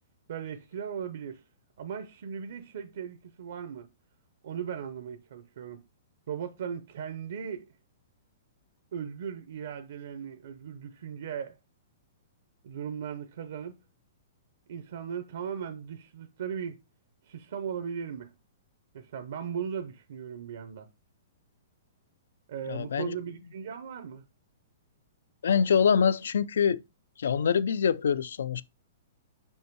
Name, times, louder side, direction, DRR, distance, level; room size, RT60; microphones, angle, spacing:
voice 1, 0.3-1.4 1.8-3.9 4.4-5.8 6.3-7.7 8.9-11.6 12.6-13.8 14.7-16.8 17.2-18.3 18.9-20.9 22.5-24.2, right 7 dB, 60° right, 0.7 m, -37 dB
voice 2, 22.7-23.2 25.4-26.8 27.2-28.6, left 7 dB, 85° left, 0.4 m, -25 dB
5.4 x 5.4 x 4.6 m
hypercardioid pair, 170°, 0 cm